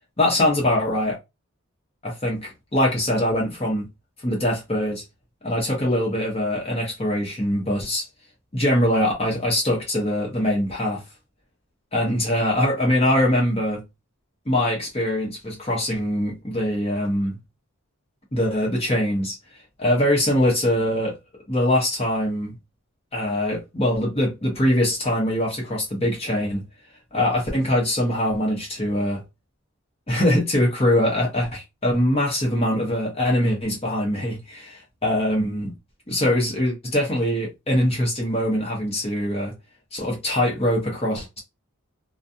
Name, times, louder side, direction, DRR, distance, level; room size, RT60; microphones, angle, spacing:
voice 1, 0.2-1.2 2.0-3.9 4.2-5.0 5.4-8.1 8.5-11.0 11.9-13.8 14.5-17.4 18.3-19.4 19.8-21.2 21.5-22.5 23.1-26.6 27.1-29.2 30.1-35.7 36.1-39.5 39.9-41.4, left 1 dB, 25° left, 0.9 m, -23 dB
2.4 x 2.3 x 2.6 m
head